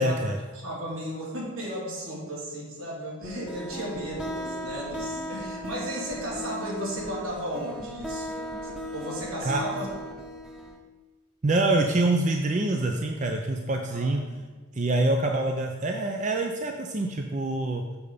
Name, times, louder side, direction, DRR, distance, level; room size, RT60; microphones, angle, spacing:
voice 1, 0.0-0.4 9.4-9.6 11.4-14.2 14.7-17.8, right 2 dB, 35° right, 3 dB, 0.5 m, -25 dB
voice 2, 0.5-8.4 8.9-9.9 13.9-14.4, equal, 80° right, -4 dB, 2.5 m, -35 dB
sound 1, 3.2-10.8, equal, 5° right, 0.8 m, -37 dB
7.0 x 6.7 x 5.0 m, 1.3 s
head